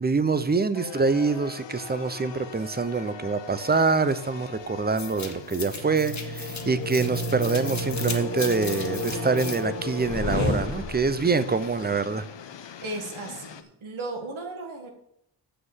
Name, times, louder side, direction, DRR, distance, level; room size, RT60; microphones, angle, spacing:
voice 1, 0.0-12.2, right 4 dB, 20° right, 13 dB, 0.6 m, -25 dB
sound 1, 0.7-13.6, left 7 dB, 65° left, 0.9 m, -43 dB
sound 2, 5.0-11.3, left 2 dB, 35° left, 1.4 m, -31 dB
voice 2, 12.8-14.9, right 2 dB, 80° right, 3 dB, 2.0 m, -35 dB
7.6 x 6.8 x 7.2 m, 0.78 s
wide cardioid pair, 120°, 48 cm